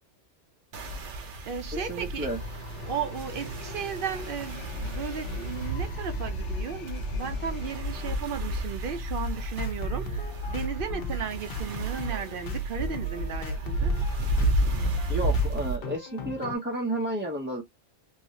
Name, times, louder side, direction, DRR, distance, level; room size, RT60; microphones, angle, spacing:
sound 1, 0.7-15.8, equal, 75° right, 1.1 m, -32 dB
voice 1, 1.2-2.3 2.9-13.9, right 7 dB, 60° right, 0.7 m, -35 dB
voice 2, 1.9-2.4 15.1-17.6, right 1 dB, 15° right, 0.4 m, -31 dB
sound 2, 2.3-8.2, left 4 dB, 85° left, 1.1 m, -43 dB
sound 3, 9.6-16.6, right 1 dB, 55° left, 0.9 m, -35 dB
3.2 x 2.7 x 2.6 m
omnidirectional pair, 1.2 m